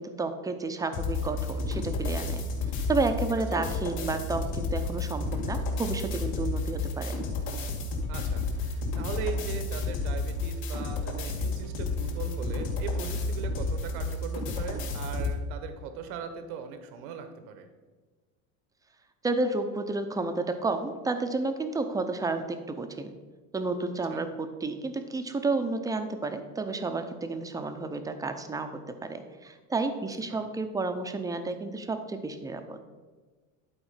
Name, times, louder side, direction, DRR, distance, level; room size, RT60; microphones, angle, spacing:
voice 1, 0.0-2.4 2.9-7.2 19.2-23.1 23.5-32.8, right 3 dB, 10° right, 7 dB, 0.5 m, -31 dB
sound 1, 0.9-15.4, left 3 dB, 55° left, 2.4 m, -31 dB
voice 2, 8.1-17.7 24.1-24.2 30.3-30.5, right 6 dB, 80° right, 8 dB, 1.1 m, -39 dB
11.0 x 4.3 x 5.6 m, 1.4 s
supercardioid pair, 130°, 43 cm